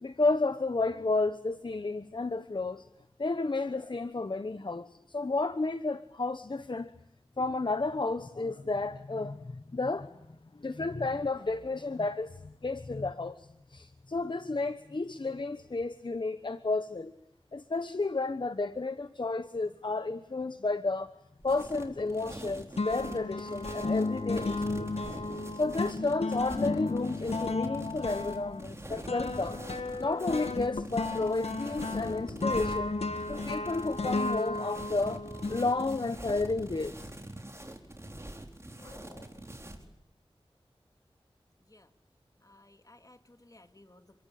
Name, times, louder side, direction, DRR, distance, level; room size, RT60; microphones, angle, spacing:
voice 1, 0.0-2.9 3.2-6.9 7.4-17.1 17.5-21.1 21.4-24.9 25.5-29.6 30.0-33.0 33.3-35.2 35.5-37.1 38.8-39.3, left 3 dB, 50° left, 1.1 m, -32 dB
sound 1, 21.4-39.9, right 1 dB, 25° right, 4.4 m, -44 dB
sound 2, 22.0-22.4 22.8-36.2, left 3 dB, 85° left, 1.7 m, -34 dB
voice 2, 42.4-44.2, left 2 dB, 35° left, 2.7 m, -58 dB
28.5 x 22.5 x 8.7 m
wide cardioid pair, 50°, 10 cm